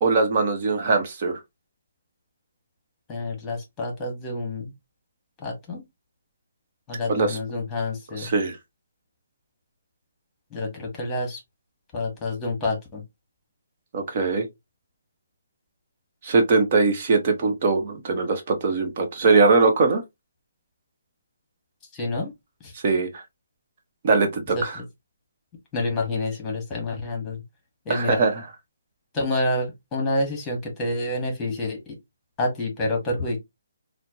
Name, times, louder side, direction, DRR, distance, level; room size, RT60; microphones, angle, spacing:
voice 1, 0.0-1.4 7.1-7.4 8.2-8.6 13.9-14.5 16.2-20.0 22.8-23.2 24.0-24.8 27.9-28.4, right 4 dB, 40° right, 1.0 m, -21 dB
voice 2, 3.1-4.7 5.4-5.8 6.9-8.3 10.5-11.4 11.9-13.0 21.9-22.3 22.6-22.7 24.5-24.8 25.7-27.4 27.8-28.2 29.1-31.9 32.4-33.4, left 2 dB, 15° left, 1.3 m, -28 dB
4.2 x 2.2 x 2.7 m
hypercardioid pair, 155°, 0 cm